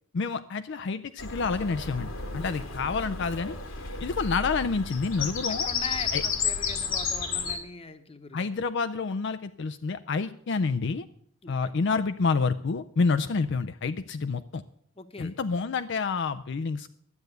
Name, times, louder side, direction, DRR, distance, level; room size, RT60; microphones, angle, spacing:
voice 1, 0.1-3.6 4.0-5.7 6.1-6.2 8.3-11.1 11.5-14.6 15.2-16.9, left 4 dB, 60° left, 10 dB, 0.5 m, -28 dB
Bird vocalization bird call bird song, 1.2-7.6, left 5 dB, 85° left, 2.2 m, -32 dB
voice 2, 5.6-8.4 11.4-11.7 15.0-15.4, left 4 dB, 30° left, 9 dB, 1.0 m, -41 dB
12.0 x 7.9 x 8.0 m, 0.66 s
head